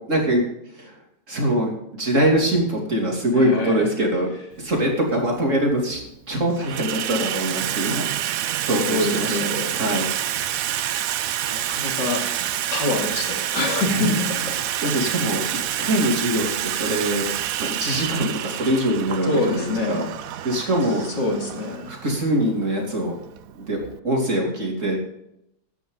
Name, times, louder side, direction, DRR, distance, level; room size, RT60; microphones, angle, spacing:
voice 1, 0.1-0.4 0.7-0.9 1.3-1.7 2.0-4.3 4.6-6.0 6.3-8.1 8.5-9.4 9.7-10.1 13.9-14.0 14.8-15.4 15.8-17.3 17.6-20.1 20.4-21.0 21.9-23.1 23.5-23.8 24.0-25.0, right 1 dB, 45° right, 0 dB, 3.3 m, -23 dB
voice 2, 3.3-3.8 8.8-9.7 11.5-12.2 12.7-14.3 14.6-14.8 15.6-15.7 19.3-20.0 21.0-21.9, left 2 dB, 80° left, 1 dB, 3.3 m, -25 dB
Water tap faucet / Sink (filling or washing), 4.6-4.7 5.7-6.1 6.4-24.0, right 11 dB, 65° right, 0.9 m, -28 dB
15.0 x 10.5 x 4.0 m, 0.80 s
omnidirectional pair, 1.9 m